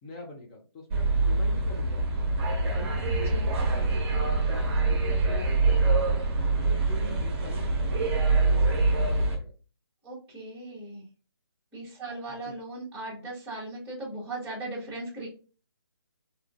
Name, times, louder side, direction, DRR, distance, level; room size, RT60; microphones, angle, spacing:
voice 1, 0.0-2.3 2.6-6.2 6.6-9.5 12.3-12.5, left 2 dB, 20° left, 0 dB, 0.5 m, -44 dB
sound 1, 0.9-9.4, right 3 dB, 30° right, 1.1 m, -25 dB
voice 2, 10.0-11.1 11.7-15.3, right 2 dB, 10° right, -9 dB, 1.2 m, -38 dB
3.6 x 2.7 x 2.4 m, 0.35 s
figure-of-eight pair, 150°, 14 cm